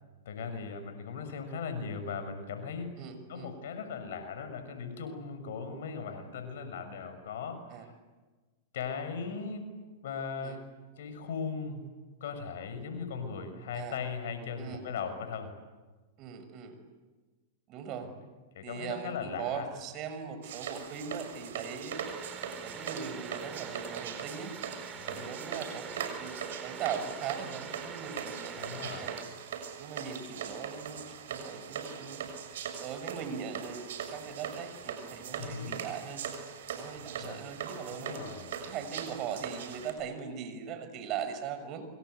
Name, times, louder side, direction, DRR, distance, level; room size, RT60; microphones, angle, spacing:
voice 1, 0.2-2.9 3.3-7.9 8.7-9.7 10.0-10.6 11.0-11.8 12.2-15.5 18.5-19.7 24.9-25.3 28.6-29.1 35.4-35.7 37.2-37.4 37.9-38.5, left 5 dB, 70° left, 8 dB, 6.6 m, -38 dB
voice 2, 3.0-3.5 7.7-7.9 10.4-10.6 13.7-14.0 14.6-14.8 16.2-16.8 17.7-18.1 18.6-22.0 22.6-24.6 25.1-29.2 29.8-32.3 32.8-36.2 36.7-38.3 38.6-41.9, right 7 dB, 40° right, 8 dB, 6.1 m, -40 dB
sound 1, 20.4-39.9, right 7 dB, 70° right, 6.4 m, -41 dB
sound 2, 21.9-29.2, right 6 dB, 25° right, 5.2 m, -44 dB
28.0 x 25.5 x 8.2 m, 1.3 s
hypercardioid pair, 110°, 0 cm